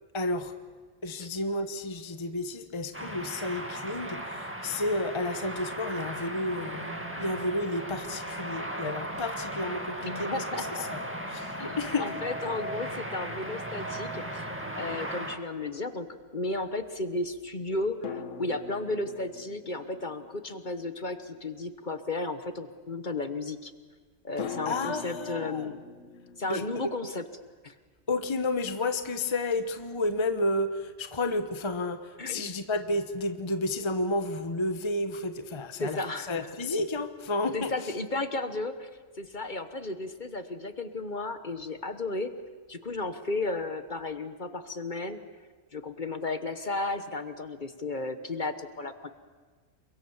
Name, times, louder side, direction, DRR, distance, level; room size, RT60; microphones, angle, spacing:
voice 1, 0.1-0.5 1.0-11.0 11.3-12.1 24.7-25.7 26.5-26.6 28.1-36.0 36.3-37.9, left 2 dB, 25° left, 8 dB, 1.0 m, -31 dB
sound 1, 2.9-15.4, right 1 dB, 10° right, 2.1 m, -37 dB
voice 2, 10.0-10.9 11.6-14.5 14.8-23.7 24.2-25.8 26.4-27.2 27.6-27.7 32.2-32.6 35.8-36.5 37.5-38.9 39.2-42.3 42.7-45.2 45.7-49.1, left 2 dB, 40° left, 9 dB, 1.3 m, -34 dB
sound 2, 12.5-14.0 18.0-21.7 24.4-27.1, left 5 dB, 80° left, 1.6 m, -44 dB
29.5 x 23.0 x 7.2 m, 1.4 s
omnidirectional pair, 1.3 m